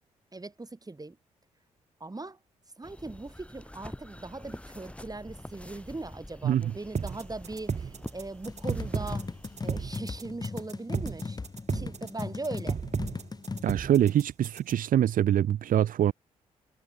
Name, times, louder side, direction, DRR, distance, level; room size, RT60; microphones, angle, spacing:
voice 1, 0.3-1.2 2.0-2.4 2.8-9.3 9.6-11.4 11.7-12.8, right 2 dB, 25° right, 6.6 m, -40 dB
sound 1, 2.8-10.0, left 1 dB, 10° left, 6.9 m, -46 dB
sound 2, 6.9-14.9, right 6 dB, 45° right, 3.2 m, -33 dB
sound 3, 8.5-13.6, left 4 dB, 25° left, 0.9 m, -37 dB
voice 2, 13.6-16.1, right 10 dB, 65° right, 1.0 m, -24 dB
hypercardioid pair, 45°, 16 cm